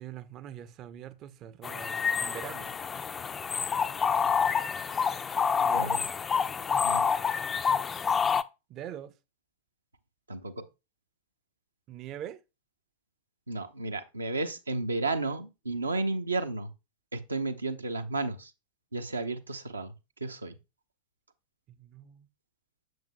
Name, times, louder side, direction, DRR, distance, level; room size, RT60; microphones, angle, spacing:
voice 1, 0.0-2.7 5.6-6.0 8.7-9.1 11.9-12.4 21.7-22.3, right 10 dB, 35° right, 0.5 m, -43 dB
sound 1, 1.6-8.4, left 6 dB, 20° left, 0.4 m, -28 dB
voice 2, 5.7-6.1 6.8-7.1 10.3-10.6 13.5-16.7 17.1-18.5 18.9-19.9 20.2-20.5, right 2 dB, 80° right, 0.7 m, -33 dB
7.8 x 7.2 x 2.2 m
figure-of-eight pair, 90°, 0 cm